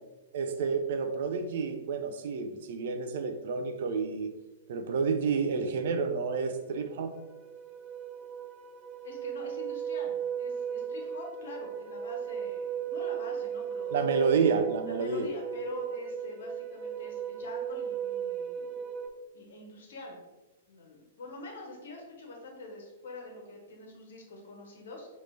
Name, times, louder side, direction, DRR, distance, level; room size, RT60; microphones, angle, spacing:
voice 1, 0.3-4.3 4.7-7.1 13.9-15.3, right 5 dB, 55° right, 6 dB, 0.5 m, -29 dB
sound 1, 6.2-6.3 6.6-19.1, right 8 dB, 15° right, 0.6 m, -36 dB
voice 2, 9.0-14.0 14.8-18.8 19.3-20.3 20.7-25.1, left 2 dB, 65° left, 0 dB, 1.2 m, -45 dB
4.9 x 3.1 x 3.2 m, 1.1 s
figure-of-eight pair, 110°, 0 cm